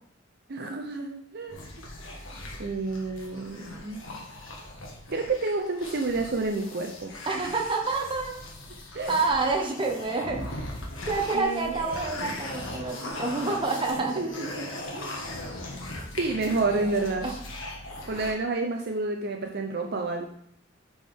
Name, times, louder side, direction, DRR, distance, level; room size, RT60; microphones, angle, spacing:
voice 1, 0.5-1.6 2.6-4.0 5.1-7.1 8.9-9.1 11.3-11.8 14.1-15.1 15.6-15.8 16.2-17.3 18.1-20.3, right 3 dB, 55° right, 3 dB, 0.7 m, -29 dB
sound 1, 1.5-18.3, left 1 dB, 80° left, 1.6 m, -39 dB
voice 2, 7.3-8.3 9.1-10.4 11.1-14.2 17.2-17.3, right 3 dB, 25° right, 0 dB, 1.2 m, -28 dB
sound 2, 12.2-17.3, left 2 dB, 50° left, 1.8 m, -46 dB
9.6 x 4.7 x 3.6 m, 0.67 s
head